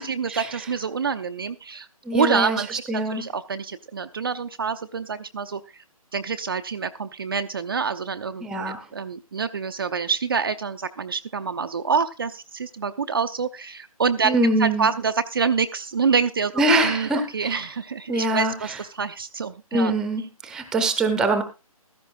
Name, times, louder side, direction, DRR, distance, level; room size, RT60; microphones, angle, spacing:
voice 1, 0.0-5.8 6.1-16.5 16.8-19.9, right 5 dB, 40° right, 7 dB, 0.5 m, -27 dB
voice 2, 2.0-2.6 2.9-3.3 8.4-8.8 14.2-14.9 16.6-17.6 18.1-18.5 19.7-21.4, right 2 dB, 5° right, 8 dB, 0.8 m, -23 dB
15.5 x 13.5 x 2.5 m, 0.26 s
figure-of-eight pair, 145°, 19 cm